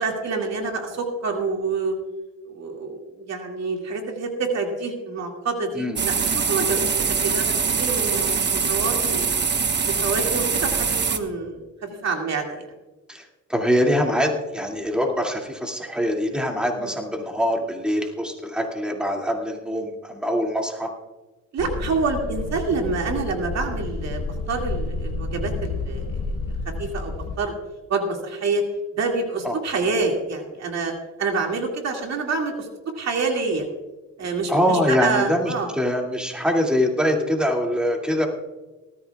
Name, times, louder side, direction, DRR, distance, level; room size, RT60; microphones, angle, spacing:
voice 1, 0.0-1.9 2.5-6.9 7.2-9.3 9.9-12.7 16.8-16.9 21.5-24.2 24.5-26.3 26.8-27.5 27.9-28.6 29.0-30.9 31.2-32.7 33.0-33.7 34.2-35.7, right 4 dB, 60° right, 2 dB, 2.3 m, -27 dB
sound 1, 6.0-11.2, right 5 dB, 35° right, 1.1 m, -23 dB
voice 2, 13.1-20.9 29.4-29.5 34.5-38.3, equal, 5° right, 0 dB, 2.4 m, -23 dB
sound 2, 21.6-27.4, left 3 dB, 55° left, 1.2 m, -30 dB
19.0 x 14.0 x 2.4 m, 1.1 s
cardioid pair, 90°, 30 cm